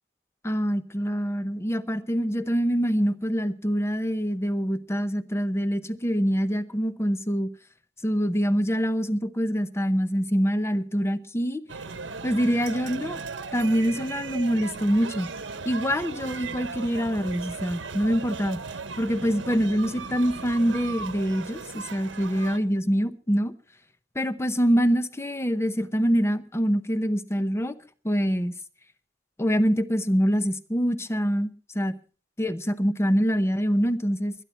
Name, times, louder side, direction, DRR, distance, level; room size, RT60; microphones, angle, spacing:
voice 1, 0.4-7.5 8.0-11.6 12.2-13.2 13.5-15.3 15.6-18.6 19.0-23.5 24.2-27.8 28.0-28.5 29.4-31.9 32.4-34.3, equal, 15° left, 0.8 m, -25 dB
sound 1, 11.7-22.6, right 4 dB, 80° right, 1.1 m, -37 dB
21.5 x 10.0 x 4.4 m
head